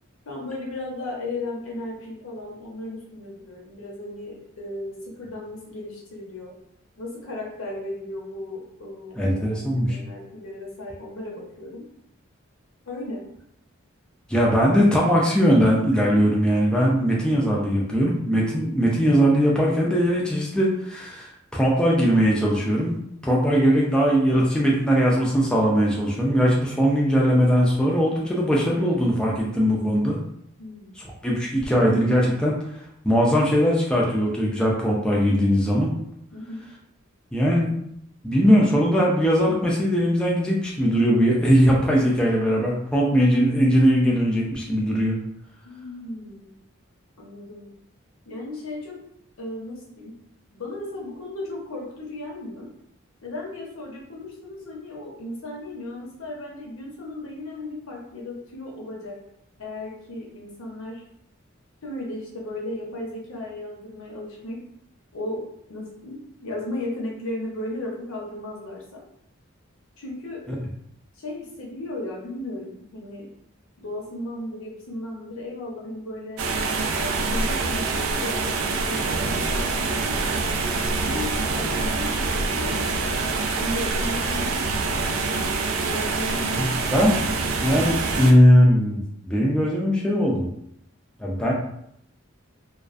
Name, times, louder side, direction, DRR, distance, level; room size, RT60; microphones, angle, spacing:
voice 1, 0.3-6.5 7.0-11.8 12.9-13.2 30.6-30.9 36.3-36.6 45.6-46.5 47.2-47.7 48.3-49.0 49.4-50.1 50.5-52.7 53.2-59.1 59.6-61.0 61.8-64.6 65.1-65.4 65.7-69.0 70.0-70.4 71.2-73.3 73.8-76.4 77.0-79.0 79.4-80.2 81.0-84.5 85.2-87.1, left 1 dB, 85° left, -2 dB, 0.8 m, -35 dB
voice 2, 9.2-10.0 14.3-22.9 23.2-30.2 31.0-32.7 33.0-35.9 37.3-37.7 38.2-45.2 70.5-70.6 86.5-87.2 87.6-90.5 91.2-91.5, equal, 5° left, -4 dB, 0.3 m, -20 dB
sound 1, 76.4-88.3, right 3 dB, 80° right, 0.3 m, -25 dB
2.4 x 2.3 x 2.4 m, 0.75 s
head